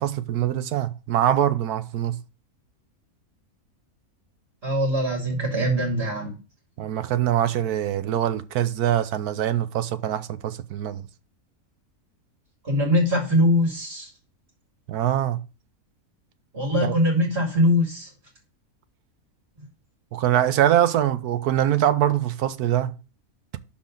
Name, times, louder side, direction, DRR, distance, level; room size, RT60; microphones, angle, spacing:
voice 1, 0.0-2.2 6.8-11.0 14.9-15.4 16.8-16.9 20.1-22.9, right 11 dB, 90° right, 1.2 m, -23 dB
voice 2, 4.6-6.3 12.6-14.1 16.5-18.1, equal, 40° right, 2.6 m, -22 dB
12.0 x 4.1 x 3.8 m
omnidirectional pair, 1.6 m